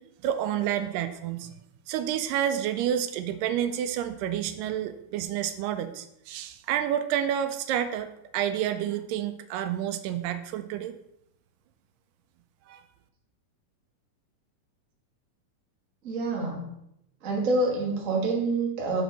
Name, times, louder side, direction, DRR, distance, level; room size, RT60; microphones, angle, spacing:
voice 1, 0.2-1.5 1.9-11.0 12.7-12.8, right 10 dB, 85° right, 10 dB, 2.1 m, -29 dB
voice 2, 16.0-16.7 17.2-19.0, right 3 dB, 45° right, -2 dB, 1.1 m, -27 dB
6.3 x 6.0 x 3.9 m, 0.78 s
omnidirectional pair, 3.9 m